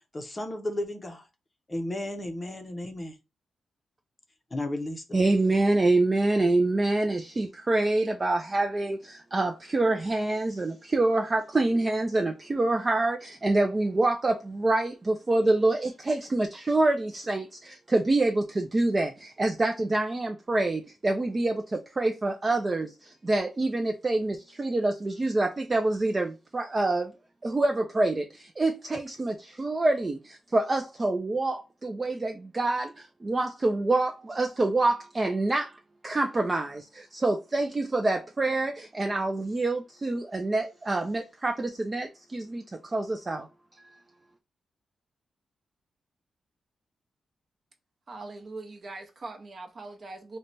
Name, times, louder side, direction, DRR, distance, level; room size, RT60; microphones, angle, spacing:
voice 1, 0.1-1.3 1.7-3.2 4.5-5.2, left 1 dB, 20° left, 0.6 m, -34 dB
voice 2, 5.1-27.1 27.4-35.8 36.0-43.5, right 2 dB, 25° right, 0.3 m, -26 dB
voice 3, 48.1-50.4, right 3 dB, 40° right, 0.7 m, -41 dB
3.1 x 2.1 x 4.0 m
wide cardioid pair, 120°, 0 cm